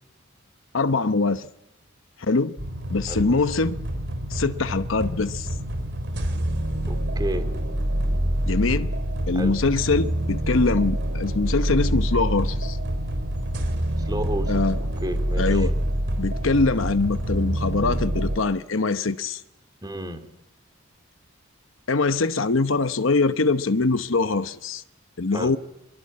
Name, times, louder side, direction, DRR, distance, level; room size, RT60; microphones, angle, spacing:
voice 1, 0.7-1.5 2.3-2.6 2.9-3.8 4.3-5.6 8.5-8.9 9.3-12.8 14.5-14.8 15.4-15.7 16.2-19.4 21.9-24.8 25.2-25.6, left 3 dB, 70° left, 0.9 m, -23 dB
sound 1, 2.6-18.4, right 1 dB, 60° right, 3.7 m, -26 dB
voice 2, 6.9-7.5 9.3-9.5 14.0-15.7 19.8-20.3 25.3-25.6, right 1 dB, 20° right, 2.8 m, -32 dB
25.0 x 22.5 x 8.7 m
head